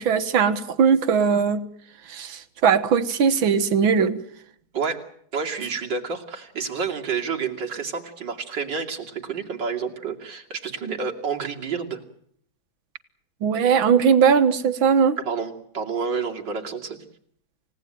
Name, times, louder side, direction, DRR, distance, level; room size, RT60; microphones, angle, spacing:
voice 1, 0.0-1.6 2.1-4.2 13.4-15.2, right 6 dB, 80° right, 11 dB, 2.1 m, -19 dB
voice 2, 5.3-12.0 15.2-17.0, right 5 dB, 60° right, 1 dB, 3.3 m, -29 dB
29.0 x 17.0 x 9.2 m, 0.66 s
omnidirectional pair, 2.2 m